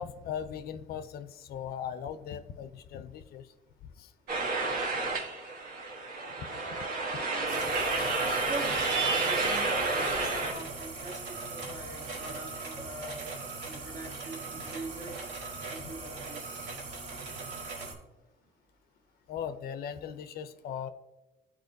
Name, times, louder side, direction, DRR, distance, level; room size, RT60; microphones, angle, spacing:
voice 1, 0.0-3.5 4.0-4.1 6.4-6.8 15.8-15.9 19.3-20.9, left 8 dB, 65° left, 11 dB, 0.5 m, -39 dB
sound 1, 4.3-10.5, right 3 dB, 65° right, 1.4 m, -30 dB
sound 2, 7.5-17.9, right 3 dB, 85° right, 1.9 m, -40 dB
voice 2, 8.5-13.3 13.6-15.2 15.7-16.7, right 2 dB, 50° right, 3 dB, 1.5 m, -42 dB
12.5 x 4.3 x 2.6 m, 0.99 s
cardioid pair, 110°, 17 cm